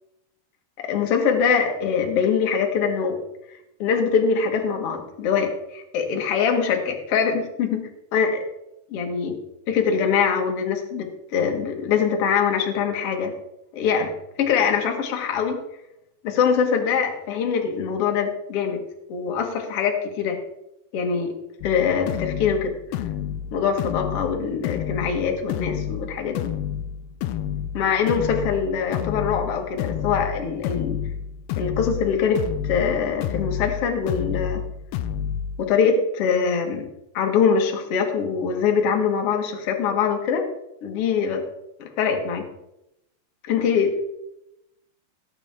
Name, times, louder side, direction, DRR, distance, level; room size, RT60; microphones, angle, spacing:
voice 1, 0.8-3.2 3.8-8.4 8.9-9.4 9.7-13.3 13.7-14.1 14.4-15.6 16.2-18.8 19.1-20.4 20.9-21.3 21.6-22.7 23.5-26.5 27.7-31.0 31.5-34.6 35.6-36.9 37.1-40.5 40.8-41.4 41.8-42.5 43.5-43.9, left 6 dB, 50° left, 3 dB, 2.0 m, -23 dB
sound 1, 21.6-35.6, left 9 dB, 90° left, 2.6 m, -30 dB
18.0 x 8.7 x 3.7 m, 0.86 s
omnidirectional pair, 4.5 m